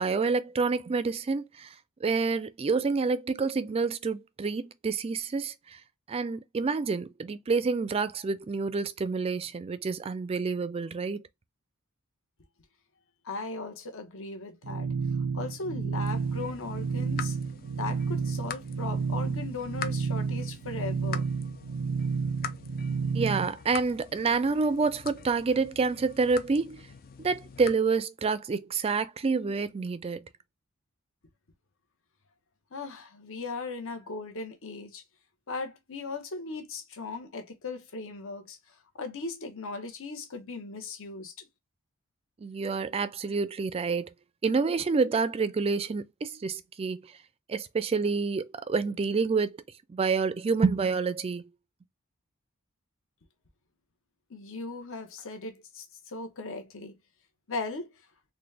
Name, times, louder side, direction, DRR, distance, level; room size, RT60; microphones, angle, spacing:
voice 1, 0.0-1.7 2.0-5.8 6.1-11.2 23.1-26.8 27.2-30.3 42.4-44.1 44.4-47.0 47.5-49.6 49.9-51.5, right 4 dB, 25° right, 0.3 m, -28 dB
voice 2, 13.2-14.9 15.3-17.4 17.8-21.3 32.7-35.0 35.5-38.6 38.9-41.5 54.3-57.0 57.5-57.9, left 3 dB, 65° left, 1.0 m, -38 dB
sound 1, 14.6-23.5, right 5 dB, 85° right, 0.5 m, -31 dB
sound 2, 16.0-27.7, left 7 dB, 40° left, 0.4 m, -44 dB
4.0 x 2.2 x 3.3 m
head